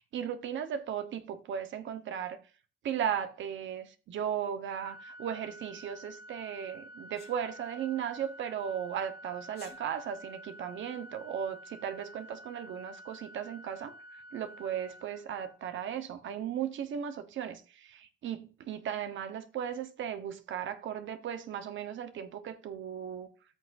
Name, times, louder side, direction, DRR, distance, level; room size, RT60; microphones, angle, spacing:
voice 1, 0.0-2.4 2.8-23.3, right 9 dB, 70° right, 1.1 m, -36 dB
Organ, 4.7-15.8, equal, 25° right, 1.7 m, -50 dB
Sneeze, 7.1-7.4 9.5-9.8, left 6 dB, 50° left, 2.4 m, -52 dB
13.0 x 6.4 x 2.6 m
cardioid pair, 90°, 20 cm